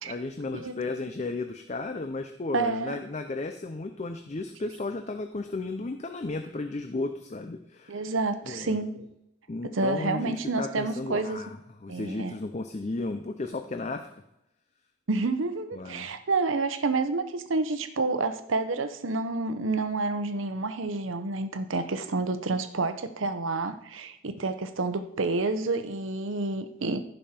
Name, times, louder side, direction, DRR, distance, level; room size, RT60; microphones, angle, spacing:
voice 1, 0.0-8.0 8.5-8.8 9.5-14.2 15.8-16.1, left 3 dB, 35° left, 7 dB, 0.5 m, -34 dB
voice 2, 2.5-3.0 7.9-9.1 9.6-11.4 11.9-12.3 15.1-27.0, right 3 dB, 80° right, 10 dB, 0.9 m, -29 dB
15.5 x 5.5 x 4.4 m, 0.86 s
head